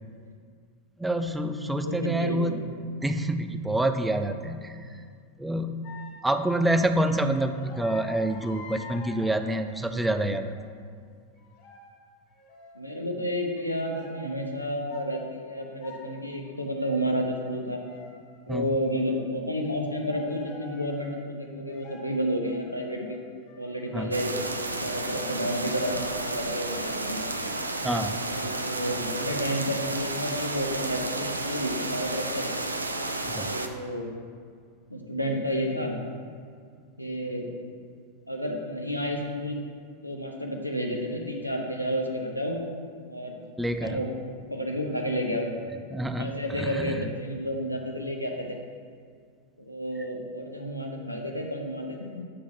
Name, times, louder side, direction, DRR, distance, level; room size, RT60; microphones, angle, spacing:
voice 1, 1.0-4.8 5.4-5.8 6.2-10.5 18.5-18.7 23.9-24.1 27.8-28.2 33.2-33.5 43.6-44.0 45.9-46.3 46.6-47.0, right 1 dB, 5° right, 8 dB, 0.4 m, -27 dB
voice 2, 1.8-2.5 12.7-17.8 18.5-23.2 23.6-24.3 24.8-27.2 28.3-32.5 33.4-34.1 34.9-35.9 37.0-37.5 38.3-39.6 40.0-42.6 43.1-43.4 43.8-44.1 44.5-45.5 46.2-48.6 49.6-52.2, equal, 90° left, 1 dB, 0.8 m, -31 dB
sound 1, 5.8-6.2 7.0-10.7 11.3-12.0 12.3-12.8 13.5-13.6 13.9-14.2 14.6-15.1 15.5-16.1 16.4-17.0 17.4-19.2 20.1-21.2 21.7-22.1 22.4-25.6, left 3 dB, 50° left, 1.3 m, -48 dB
sound 2, 24.1-33.7, right 2 dB, 80° right, 0.5 m, -32 dB
8.5 x 3.8 x 5.8 m, 2.1 s
figure-of-eight pair, 90°, 0 cm